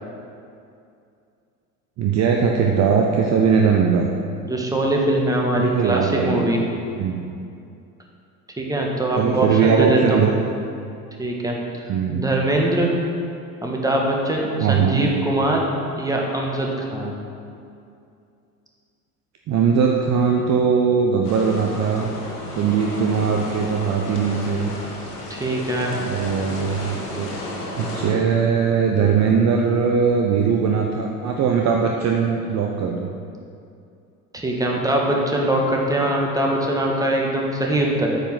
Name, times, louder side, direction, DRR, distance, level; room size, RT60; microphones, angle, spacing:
voice 1, 2.0-4.1 5.6-6.6 7.0-7.2 9.2-10.3 11.9-12.2 14.6-15.0 19.5-22.1 22.5-24.7 26.0-27.3 27.8-33.1, right 6 dB, 35° right, 1 dB, 0.8 m, -20 dB
voice 2, 4.4-6.6 8.6-10.3 11.2-11.5 12.1-12.9 13.6-15.6 16.0-17.1 25.3-26.0 34.3-38.2, right 1 dB, 10° right, -1 dB, 1.6 m, -22 dB
sound 1, 21.2-28.1, left 1 dB, 90° left, 1.3 m, -33 dB
8.7 x 5.4 x 5.9 m, 2.5 s
figure-of-eight pair, 70°, 45 cm